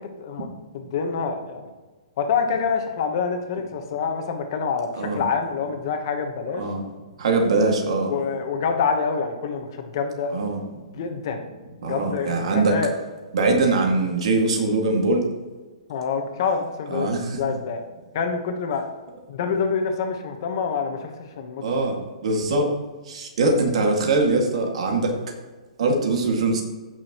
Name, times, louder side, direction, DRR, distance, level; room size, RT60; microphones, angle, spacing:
voice 1, 0.7-1.7 2.2-6.6 8.1-10.3 10.9-11.5 11.8-12.9 15.9-17.1 17.4-17.8 18.1-18.8 19.3-21.6, left 5 dB, 35° left, 5 dB, 1.1 m, -26 dB
voice 2, 7.2-8.1 10.3-10.6 11.8-12.7 13.3-15.2 16.9-17.4 21.6-22.0 22.2-22.7 23.1-25.1 25.8-26.6, right 3 dB, 55° right, 2 dB, 2.0 m, -22 dB
15.5 x 6.2 x 3.0 m, 1.3 s
hypercardioid pair, 175°, 4 cm